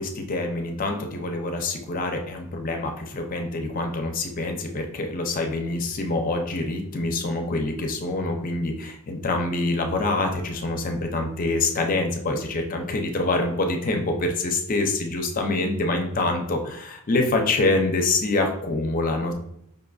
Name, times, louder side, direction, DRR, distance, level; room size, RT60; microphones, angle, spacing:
voice 1, 0.0-19.3, left 2 dB, 40° left, 4 dB, 0.5 m, -26 dB
5.3 x 2.5 x 2.3 m, 0.73 s
head